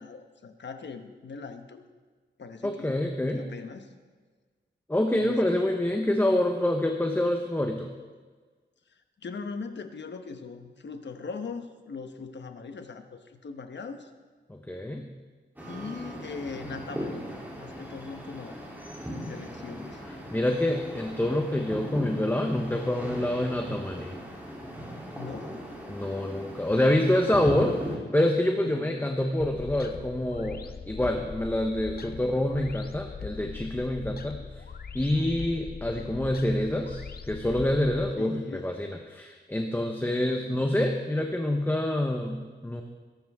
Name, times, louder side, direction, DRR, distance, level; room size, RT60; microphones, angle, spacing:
voice 1, 0.0-1.8 2.4-3.0 3.3-3.9 5.2-5.7 9.2-14.1 15.6-17.3 17.6-18.6 19.1-20.0 25.2-25.5 28.6-29.1 38.2-38.7, left 4 dB, 70° left, 7 dB, 1.2 m, -40 dB
voice 2, 2.6-3.4 4.9-7.9 14.5-15.1 20.3-24.2 25.9-34.6 34.9-42.8, left 1 dB, 10° left, 3 dB, 0.9 m, -27 dB
sound 1, 15.6-28.0, equal, 10° right, 3.2 m, -38 dB
sound 2, 29.4-38.1, left 5 dB, 55° left, 0.8 m, -41 dB
21.0 x 12.0 x 3.6 m, 1.4 s
wide cardioid pair, 115°, 19 cm